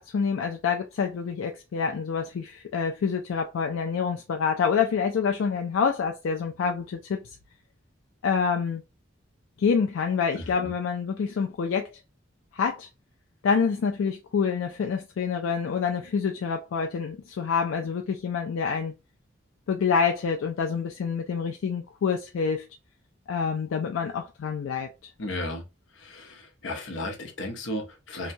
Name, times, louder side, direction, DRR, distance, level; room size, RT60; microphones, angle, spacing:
voice 1, 0.0-7.2 8.2-8.8 9.6-11.9 12.5-12.9 13.4-18.9 19.7-22.7 23.3-25.1, left 6 dB, 85° left, 0.4 m, -27 dB
voice 2, 10.3-10.7 25.2-25.7 25.9-28.3, left 1 dB, 70° left, 0.7 m, -35 dB
2.8 x 2.2 x 2.6 m
head